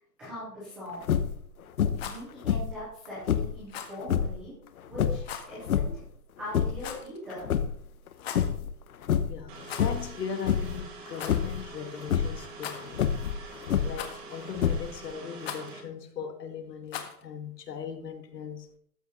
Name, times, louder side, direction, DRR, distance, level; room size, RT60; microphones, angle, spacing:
voice 1, 0.2-1.0 2.0-4.5 4.9-6.0 6.4-7.5, left 1 dB, ahead, 0.5 m, -41 dB
sound 1, 1.0-1.4 1.8-2.2 2.4-3.6 4.0-4.4 4.9-6.1 6.4-6.9 7.3-8.1 8.4-8.7 9.0-9.4 9.8-10.1 10.4-10.8 11.3-11.6 12.0-12.4 12.9-14.1 14.6-15.1, left 8 dB, 60° left, 1.2 m, -27 dB
Rattle, 1.8-2.2 3.7-4.0 5.2-5.5 6.8-7.2 8.1-8.5 9.6-10.0 10.3-10.4 11.1-11.4 12.6-13.1 14.0-14.4 15.4-15.7 16.9-17.2, left 8 dB, 40° left, 1.7 m, -39 dB
voice 2, 9.3-13.2 13.8-18.7, left 7 dB, 75° left, 2.3 m, -39 dB
sound 2, 9.5-15.8, right 3 dB, 20° right, 2.3 m, -46 dB
13.5 x 6.3 x 5.5 m
hypercardioid pair, 165°, 48 cm